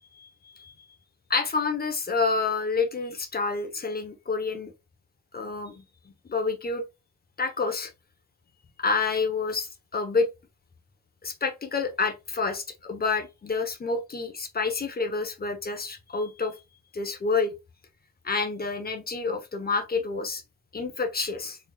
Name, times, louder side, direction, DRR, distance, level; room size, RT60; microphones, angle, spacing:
voice 1, 1.3-4.7 5.3-5.8 6.3-6.8 7.4-7.9 8.8-10.3 11.2-16.5 16.9-17.5 18.2-20.4 20.7-21.6, left 4 dB, 30° left, 1.0 m, -28 dB
4.0 x 3.5 x 2.3 m
cardioid pair, 90°, 30 cm